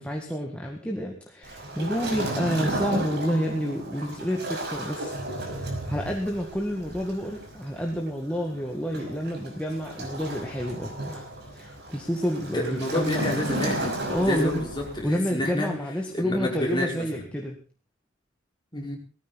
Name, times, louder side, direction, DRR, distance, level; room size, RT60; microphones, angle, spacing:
voice 1, 0.0-5.1 5.5-13.2 14.1-14.6 15.0-17.6, equal, 5° left, 1 dB, 2.0 m, -29 dB
Waves surf, 1.4-15.1, right 1 dB, 55° right, 5.6 m, -33 dB
voice 2, 12.5-15.7 16.1-17.1 18.7-19.0, left 1 dB, 20° left, -1 dB, 5.0 m, -29 dB
18.5 x 14.5 x 4.2 m, 0.36 s
head